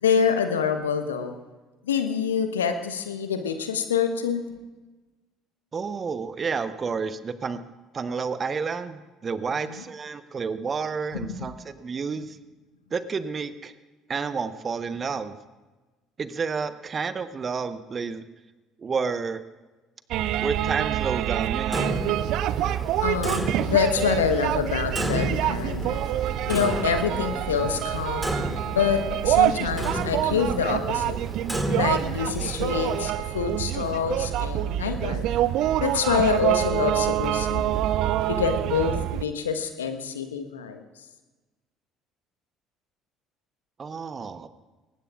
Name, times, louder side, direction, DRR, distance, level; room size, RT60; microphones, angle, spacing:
voice 1, 0.0-1.3 1.9-4.4 23.0-26.1 26.5-31.2 31.7-35.3 35.8-37.8 38.3-40.8, left 6 dB, 80° left, 8 dB, 1.1 m, -26 dB
voice 2, 5.7-7.6 7.9-12.4 12.9-13.7 14.1-15.3 16.2-18.2 18.8-19.4 20.4-21.9 43.8-44.5, right 5 dB, 35° right, 12 dB, 1.0 m, -30 dB
sound 1, 20.1-39.2, right 13 dB, 60° right, 0.4 m, -26 dB
Clock, 21.7-33.0, right 1 dB, ahead, 2.2 m, -33 dB
23.0 x 19.5 x 2.4 m, 1.2 s
figure-of-eight pair, 55°, 0 cm